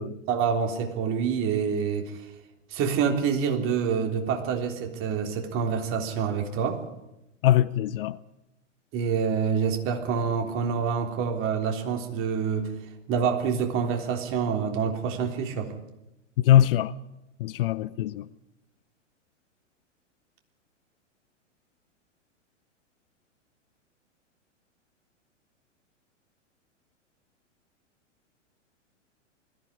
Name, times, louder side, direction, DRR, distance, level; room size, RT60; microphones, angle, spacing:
voice 1, 0.0-2.2 2.7-6.8 8.9-12.7 13.1-15.7, right 6 dB, 35° right, 3.5 m, -27 dB
voice 2, 7.4-8.2 16.4-16.9 17.4-18.3, left 12 dB, 50° left, 0.7 m, -22 dB
20.5 x 15.0 x 9.9 m
figure-of-eight pair, 105°, 37 cm